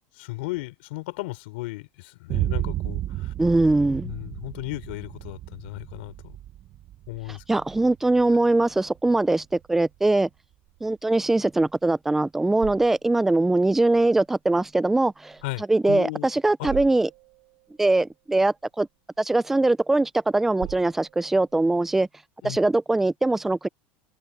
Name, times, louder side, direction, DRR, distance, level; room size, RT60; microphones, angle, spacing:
voice 1, 0.2-3.3 4.0-6.4 7.1-7.4 15.4-16.3 16.6-16.7 22.4-22.6, left 21 dB, 70° left, 3.8 m, -35 dB
Boom, 2.3-10.1, right 14 dB, 30° right, 0.9 m, -33 dB
voice 2, 3.4-4.1 7.3-10.3 10.8-17.1 17.8-18.9 19.2-22.1 22.4-23.7, right 2 dB, 5° right, 0.4 m, -22 dB
sound 1, 9.4-22.1, right 29 dB, 50° right, 6.4 m, -45 dB
supercardioid pair, 170°, 6 cm